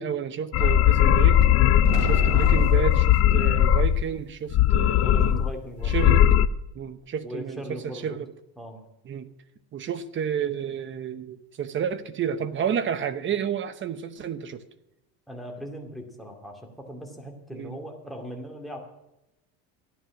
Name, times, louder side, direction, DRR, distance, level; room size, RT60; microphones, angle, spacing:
voice 1, 0.0-1.4 2.0-5.4 5.8-6.3 6.7-8.3 9.0-9.3 9.7-14.6 17.5-17.8, right 8 dB, 30° right, 11 dB, 0.9 m, -31 dB
sound 1, 0.5-4.1 4.5-5.5 5.8-6.5, left 10 dB, 35° left, 0.5 m, -19 dB
voice 2, 0.5-0.9 5.0-6.0 7.2-8.2 8.6-8.9 15.3-18.9, equal, ahead, 2 dB, 2.4 m, -39 dB
sound 2, 1.2-3.1, right 3 dB, 45° right, 3.7 m, -36 dB
13.5 x 11.0 x 6.2 m, 0.91 s
cardioid pair, 145°, 40 cm